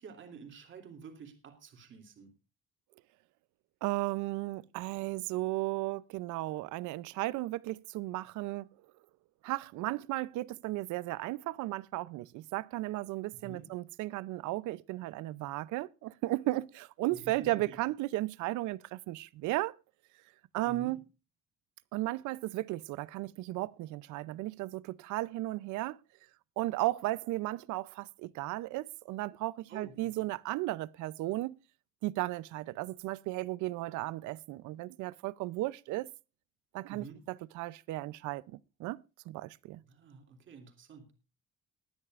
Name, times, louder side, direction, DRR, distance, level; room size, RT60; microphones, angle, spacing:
voice 1, 0.0-2.3 13.3-13.7 17.1-17.8 20.6-20.9 29.7-30.3 36.9-37.2 39.8-41.1, right 5 dB, 40° right, 2.8 m, -49 dB
voice 2, 3.8-8.7 9.4-19.7 20.5-21.0 21.9-26.0 26.6-31.5 32.0-36.1 36.7-38.4 38.8-39.8, right 18 dB, 80° right, 0.6 m, -35 dB
20.5 x 10.0 x 2.5 m
cardioid pair, 165°, 29 cm